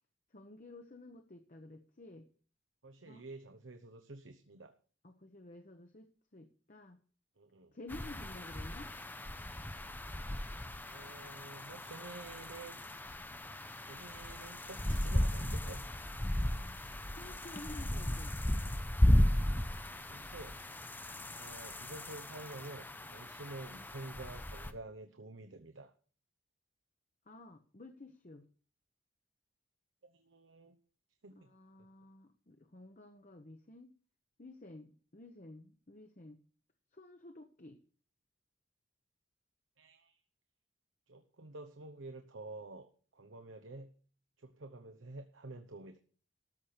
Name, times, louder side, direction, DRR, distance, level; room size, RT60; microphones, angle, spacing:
voice 1, 0.3-2.3 3.1-3.2 5.0-7.0 7.7-8.9 16.3-16.8 17.2-18.3 27.3-28.5 31.3-33.9 34.4-36.4 36.9-37.8, left 2 dB, 40° left, 5 dB, 0.9 m, -52 dB
voice 2, 2.8-4.8 7.4-7.7 10.9-13.0 13.8-15.8 20.1-20.6 21.4-25.9 30.0-30.8 31.2-31.5 39.8-40.2 41.1-43.9 44.4-46.0, right 2 dB, 75° right, 7 dB, 0.9 m, -49 dB
sound 1, 7.9-24.7, left 1 dB, 10° left, 0.6 m, -35 dB
13.5 x 5.9 x 6.7 m, 0.42 s
head